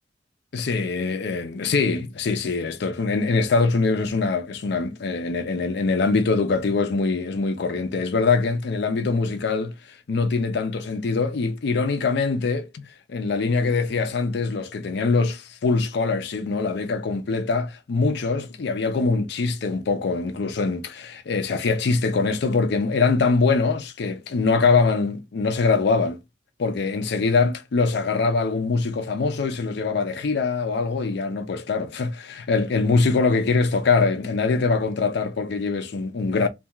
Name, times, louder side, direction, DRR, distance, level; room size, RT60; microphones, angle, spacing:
voice 1, 0.5-9.7 10.1-12.8 13.1-26.2 26.6-36.5, left 4 dB, 65° left, 0.4 m, -23 dB
2.3 x 2.3 x 2.8 m
head